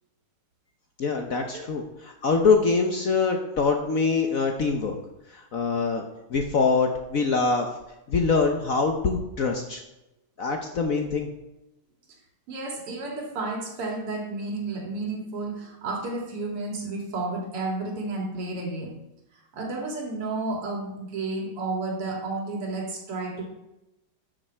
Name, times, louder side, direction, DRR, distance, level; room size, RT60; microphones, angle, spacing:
voice 1, 1.0-4.9 5.3-6.0 6.3-7.7 8.1-9.8 10.4-11.3, left 4 dB, 55° left, 3 dB, 1.0 m, -24 dB
voice 2, 12.5-18.9 19.3-23.5, right 3 dB, 85° right, 0 dB, 3.1 m, -32 dB
13.0 x 6.7 x 4.5 m, 0.92 s
omnidirectional pair, 2.4 m